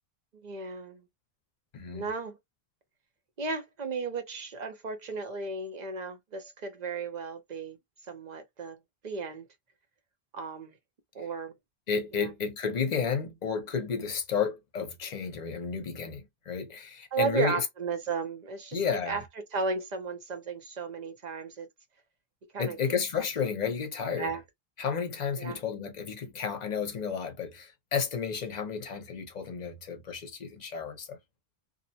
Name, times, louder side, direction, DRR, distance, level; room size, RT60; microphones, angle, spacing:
voice 1, 0.4-1.0 1.9-2.4 3.4-7.8 8.1-8.8 9.0-9.5 10.3-10.8 11.1-11.5 12.1-12.3 17.1-21.7 22.5-22.8 24.2-24.4 25.4-25.6, right 4 dB, 50° right, 0.7 m, -34 dB
voice 2, 1.7-2.1 11.2-11.3 11.9-17.6 18.7-19.2 22.6-24.3 24.8-31.2, left 6 dB, 45° left, 0.7 m, -32 dB
2.7 x 2.1 x 2.7 m
omnidirectional pair, 1.1 m